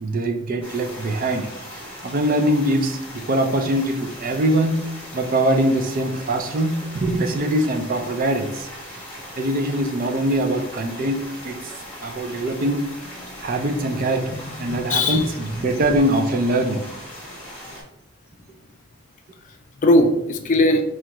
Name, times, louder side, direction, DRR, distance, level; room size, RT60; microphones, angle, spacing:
voice 1, 0.0-1.5 1.7-8.7 9.4-11.6 12.0-12.9 13.4-16.9, right 1 dB, 45° right, 5 dB, 0.4 m, -23 dB
sound 1, 0.6-17.8, equal, 5° left, 1.2 m, -39 dB
voice 2, 14.3-15.3 19.8-20.8, left 1 dB, 40° left, 5 dB, 0.4 m, -19 dB
4.2 x 2.4 x 2.9 m, 0.80 s
head